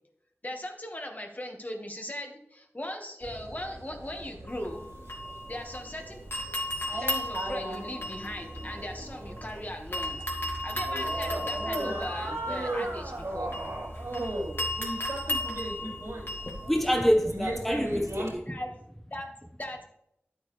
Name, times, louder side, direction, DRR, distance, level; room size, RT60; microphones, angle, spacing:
voice 1, 0.4-4.8 5.5-6.2 7.0-10.3 10.6-13.5 18.5-18.7 19.1-19.8, left 1 dB, 35° left, 1.8 m, -39 dB
sound 1, 3.2-18.3, right 1 dB, 85° right, 3.8 m, -37 dB
sound 2, 4.5-6.0 6.3-9.5 9.9-16.7, left 1 dB, 55° left, 2.5 m, -35 dB
voice 2, 16.7-18.6, equal, 5° left, 1.3 m, -26 dB
10.5 x 8.7 x 3.4 m
wide cardioid pair, 45°, 5 cm